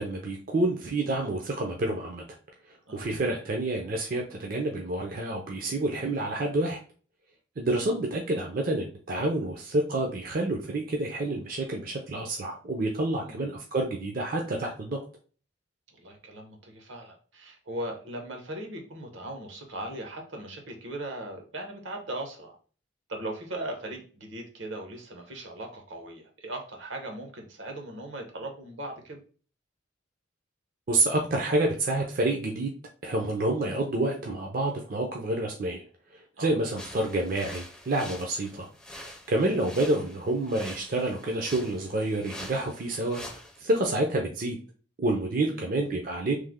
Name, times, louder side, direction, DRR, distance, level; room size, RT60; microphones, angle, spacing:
voice 1, 0.0-2.2 2.7-6.8 7.6-15.0 30.9-32.7 33.0-35.8 36.4-38.7 39.0-44.6 45.0-46.4, right 2 dB, 45° right, 1 dB, 0.5 m, -28 dB
voice 2, 16.0-22.6 23.1-29.2 36.4-36.5 45.4-45.7, right 1 dB, 75° right, 3 dB, 0.9 m, -39 dB
sound 1, 36.8-43.6, left 1 dB, 5° left, 0.5 m, -45 dB
3.2 x 2.0 x 3.5 m, 0.39 s
head